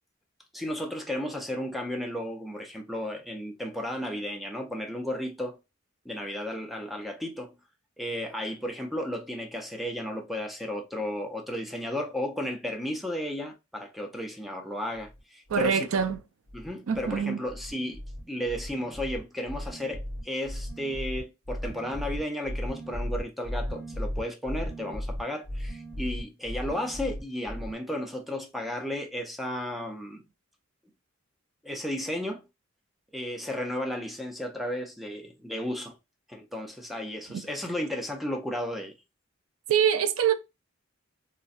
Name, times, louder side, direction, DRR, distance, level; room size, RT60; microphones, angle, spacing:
voice 1, 0.5-5.6 6.0-7.5 8.0-15.9 16.5-30.2 31.6-32.4 33.1-36.0 36.3-38.9, left 1 dB, ahead, 0.6 m, -34 dB
sound 1, 14.9-15.2 15.5-16.2 16.5-17.2 17.5-27.7, equal, 60° right, 1.1 m, -36 dB
voice 2, 15.5-16.2 16.9-17.4 39.7-40.3, right 8 dB, 75° right, 0.4 m, -24 dB
3.8 x 2.2 x 2.5 m
head